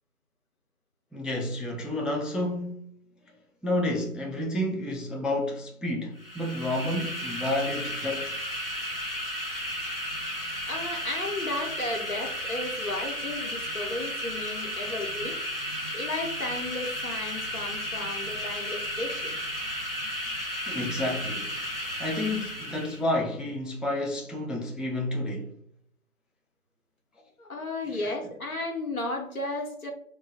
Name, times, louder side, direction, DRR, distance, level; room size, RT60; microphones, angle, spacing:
voice 1, 1.1-2.9 3.6-8.3 20.7-21.5 22.0-25.5 27.9-28.1, left 1 dB, ahead, 0.3 m, -30 dB
sound 1, 6.2-23.0, equal, 45° left, 0.6 m, -34 dB
voice 2, 10.7-15.7 15.9-19.4 27.4-29.9, left 2 dB, 80° left, 1.0 m, -34 dB
3.0 x 2.2 x 2.8 m
figure-of-eight pair, 175°, 42 cm